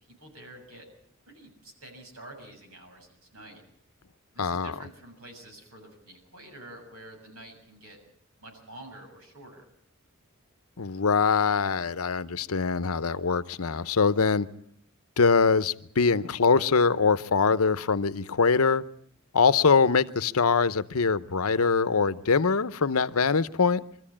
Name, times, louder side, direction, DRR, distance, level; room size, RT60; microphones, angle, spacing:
voice 1, 0.2-0.9 1.2-3.6 4.3-8.0 8.4-9.6, right 1 dB, 85° right, 7.1 m, -48 dB
voice 2, 4.4-4.7 10.8-14.5 15.2-18.8 19.3-23.8, left 5 dB, 85° left, 0.8 m, -23 dB
24.5 x 14.0 x 8.7 m
head